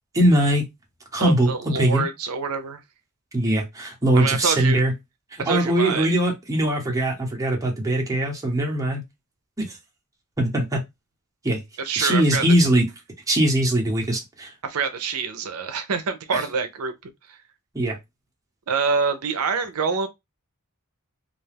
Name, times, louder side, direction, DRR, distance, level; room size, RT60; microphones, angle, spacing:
voice 1, 0.1-0.7 1.1-2.0 3.3-4.9 5.5-9.0 9.6-9.8 10.4-10.8 11.4-11.6 12.0-12.8 13.3-14.5 17.7-18.0, right 1 dB, 15° right, 0.7 m, -21 dB
voice 2, 1.2-2.8 4.2-4.8 5.4-6.1 11.8-12.4 14.6-17.4 18.7-20.1, right 5 dB, 75° right, 0.5 m, -26 dB
2.4 x 2.2 x 3.3 m
head